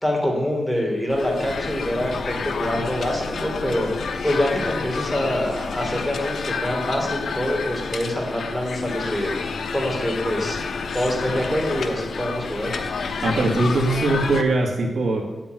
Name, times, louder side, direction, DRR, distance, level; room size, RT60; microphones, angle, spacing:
voice 1, 0.0-3.9 4.2-9.3 9.7-10.6 10.9-12.7, left 1 dB, ahead, -1 dB, 3.2 m, -25 dB
sound 1, 1.1-14.4, left 5 dB, 75° left, 1.0 m, -29 dB
voice 2, 13.2-15.2, right 2 dB, 70° right, 0 dB, 2.5 m, -21 dB
8.8 x 8.5 x 9.5 m, 1.2 s
wide cardioid pair, 130°, 0 cm